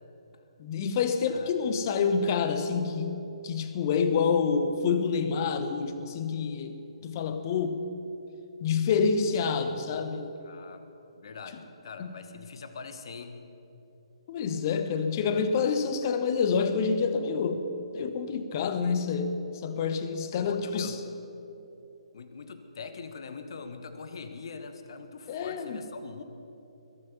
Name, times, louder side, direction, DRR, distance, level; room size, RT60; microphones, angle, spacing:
voice 1, 0.6-6.8 7.0-7.8 8.6-10.4 12.0-12.2 14.3-17.6 17.9-21.0 25.3-25.8, left 5 dB, 35° left, 9 dB, 1.1 m, -28 dB
voice 2, 10.4-10.8 11.2-13.4 20.4-21.0 22.1-26.2, left 5 dB, 55° left, 9 dB, 1.3 m, -43 dB
21.0 x 8.1 x 7.0 m, 3.0 s
figure-of-eight pair, 135°, 3 cm